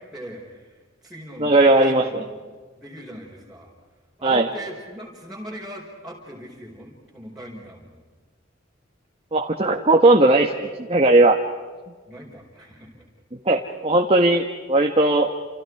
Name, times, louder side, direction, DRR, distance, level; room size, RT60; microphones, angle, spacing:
voice 1, 0.0-2.3 2.8-3.7 4.2-8.0 12.1-13.0, equal, ahead, -6 dB, 5.0 m, -40 dB
voice 2, 1.4-2.2 4.2-4.5 9.3-11.4 13.4-15.3, right 2 dB, 30° right, 1 dB, 1.6 m, -17 dB
29.5 x 29.0 x 4.9 m, 1.4 s
head